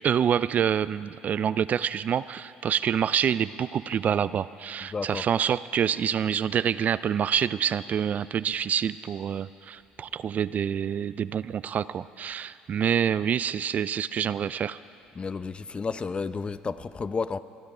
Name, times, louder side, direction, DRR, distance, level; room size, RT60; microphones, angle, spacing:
voice 1, 0.0-14.8, right 8 dB, 45° right, 16 dB, 0.3 m, -27 dB
voice 2, 4.9-5.2 15.2-17.4, left 4 dB, 30° left, 14 dB, 0.6 m, -31 dB
25.0 x 10.5 x 4.9 m, 2.6 s
supercardioid pair, 70°, 4 cm